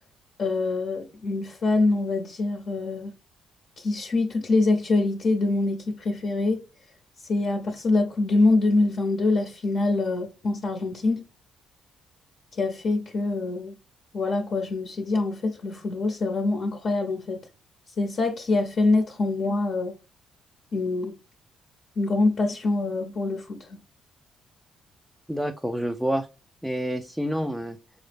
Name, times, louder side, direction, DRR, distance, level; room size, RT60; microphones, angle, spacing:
voice 1, 0.4-3.1 3.8-6.6 7.3-11.2 12.5-13.7 14.1-17.4 18.0-19.9 20.7-21.1 22.0-23.8, left 3 dB, 55° left, 0.7 m, -25 dB
voice 2, 25.3-26.3 26.6-27.8, equal, ahead, 0.3 m, -28 dB
4.9 x 2.0 x 3.3 m
cardioid pair, 90°, 0 cm